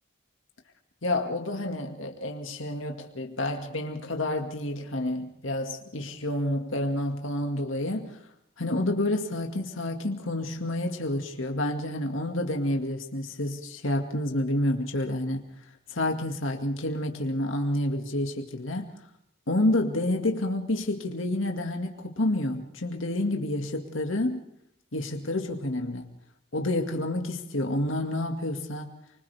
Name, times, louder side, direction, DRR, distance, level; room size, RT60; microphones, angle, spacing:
voice 1, 1.0-8.2 8.6-15.4 15.9-18.9 19.5-24.4 24.9-26.1 26.5-28.9, left 1 dB, 75° left, 3 dB, 2.1 m, -29 dB
30.0 x 25.0 x 3.5 m, 0.74 s
head